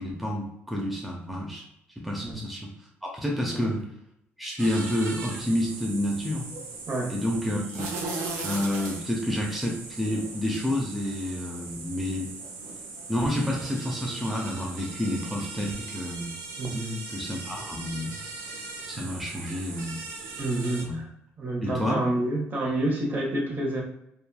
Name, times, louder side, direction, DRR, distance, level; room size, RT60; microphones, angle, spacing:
voice 1, 0.0-1.7 2.0-2.7 3.0-3.9 4.4-6.5 7.1-7.9 8.4-12.3 13.1-16.3 17.1-18.1 18.9-20.0 20.8-21.0 21.6-22.0, left 1 dB, ahead, -1 dB, 0.6 m, -29 dB
sound 1, 4.6-20.8, right 3 dB, 85° right, 0.6 m, -38 dB
voice 2, 16.6-17.0 20.4-21.1 21.4-23.8, right 1 dB, 40° right, -1 dB, 0.9 m, -28 dB
3.0 x 2.2 x 2.2 m, 0.80 s
supercardioid pair, 80°, 5 cm